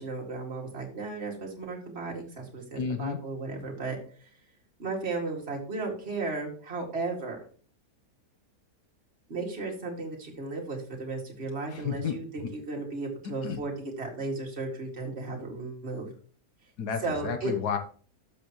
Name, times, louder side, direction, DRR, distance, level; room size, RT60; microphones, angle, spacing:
voice 1, 0.0-4.3 4.8-7.4 9.3-16.1 17.0-17.5, right 3 dB, 40° right, -1 dB, 2.4 m, -35 dB
voice 2, 2.8-3.2 11.7-12.2 13.4-13.6 16.8-17.8, left 7 dB, 75° left, 8 dB, 1.5 m, -31 dB
12.0 x 6.9 x 3.0 m, 0.42 s
omnidirectional pair, 1.8 m